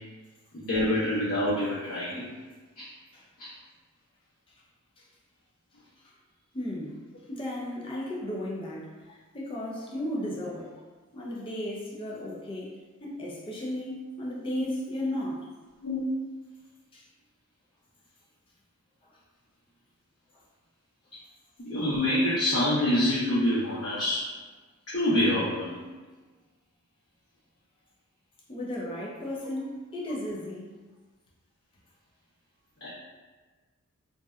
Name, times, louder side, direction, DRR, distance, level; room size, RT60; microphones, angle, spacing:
voice 1, 0.5-2.2 2.8-2.9 3.4-3.5 14.6-14.7 15.8-16.0 21.7-24.2 24.9-25.8 32.8-32.9, left 1 dB, 90° left, -13 dB, 1.0 m, -26 dB
voice 2, 6.5-7.0 7.3-10.8 11.1-12.7 13.0-15.4 16.9-17.0 28.5-30.7, left 1 dB, 25° left, -4 dB, 0.4 m, -35 dB
2.6 x 2.1 x 2.3 m, 1.3 s
head